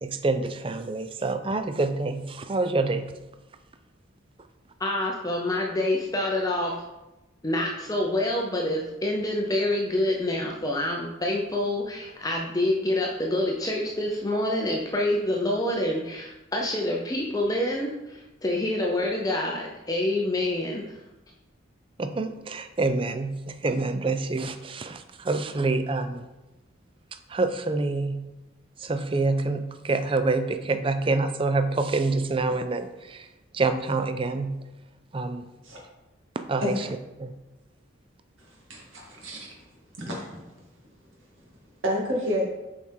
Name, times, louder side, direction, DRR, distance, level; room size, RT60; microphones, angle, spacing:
voice 1, 0.0-3.1 22.0-26.3 27.3-28.2 28.8-33.3 33.5-34.6 35.1-35.5 36.5-36.9 37.2-37.3, right 3 dB, 25° right, 9 dB, 0.4 m, -27 dB
voice 2, 4.8-6.8 7.4-21.0, left 1 dB, 20° left, 0 dB, 0.6 m, -27 dB
voice 3, 38.7-39.5 40.0-40.3 41.8-42.4, equal, 80° right, -2 dB, 2.2 m, -29 dB
7.1 x 4.8 x 4.4 m, 1.0 s
head